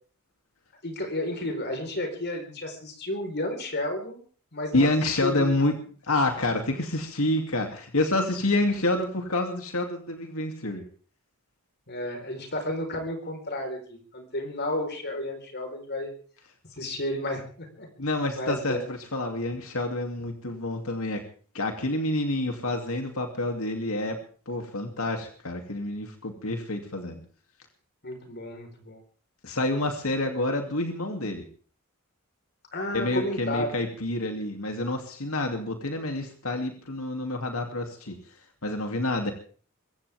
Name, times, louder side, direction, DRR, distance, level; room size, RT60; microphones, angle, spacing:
voice 1, 0.8-4.2 4.5-4.9 5.2-5.5 11.9-16.1 16.7-17.9 18.4-18.8 28.0-29.0 32.7-33.7, left 1 dB, 50° left, 5 dB, 4.6 m, -32 dB
voice 2, 4.7-5.7 6.0-10.8 18.0-21.2 21.5-24.2 24.5-27.2 29.4-31.4 32.9-38.2 38.6-39.3, left 2 dB, 70° left, 4 dB, 2.9 m, -28 dB
23.5 x 16.0 x 3.6 m, 0.42 s
head